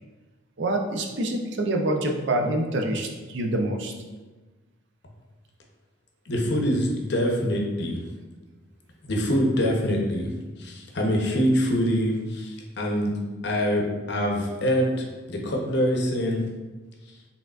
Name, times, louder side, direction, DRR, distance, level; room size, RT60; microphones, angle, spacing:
voice 1, 0.6-3.9, right 1 dB, 60° right, 3 dB, 0.5 m, -26 dB
voice 2, 6.3-8.0 9.0-10.3 10.6-13.1 13.4-16.4, equal, 55° left, 0 dB, 0.7 m, -24 dB
4.7 x 3.5 x 2.3 m, 1.2 s
head